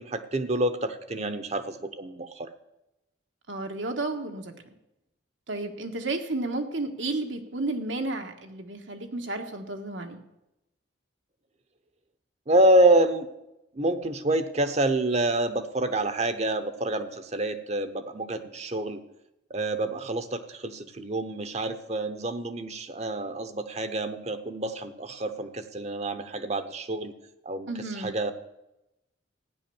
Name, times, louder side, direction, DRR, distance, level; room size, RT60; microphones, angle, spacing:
voice 1, 0.0-2.5 12.5-13.3 13.7-19.0 19.5-27.1 27.4-27.7 28.0-28.3, right 1 dB, 35° right, 10 dB, 0.9 m, -27 dB
voice 2, 3.5-4.5 5.5-10.2 27.7-28.1, right 2 dB, 85° right, 4 dB, 1.7 m, -32 dB
15.0 x 10.0 x 7.1 m, 0.91 s
head